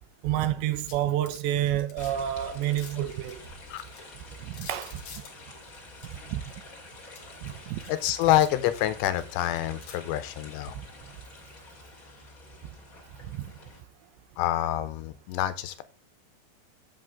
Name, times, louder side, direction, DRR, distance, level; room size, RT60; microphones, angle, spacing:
voice 1, 0.2-3.4 4.4-5.0 6.1-6.4 7.4-7.8 13.2-13.5, right 12 dB, 85° right, 3.1 m, -29 dB
sound 1, 0.8-2.1 2.4-4.0 4.5-6.4 7.0-8.5 8.8-10.0, left 6 dB, 55° left, 2.2 m, -48 dB
sound 2, 2.0-13.8, left 2 dB, 30° left, 1.7 m, -47 dB
voice 2, 7.9-10.8 14.4-15.8, left 13 dB, 80° left, 3.0 m, -27 dB
8.5 x 7.8 x 3.6 m
omnidirectional pair, 5.1 m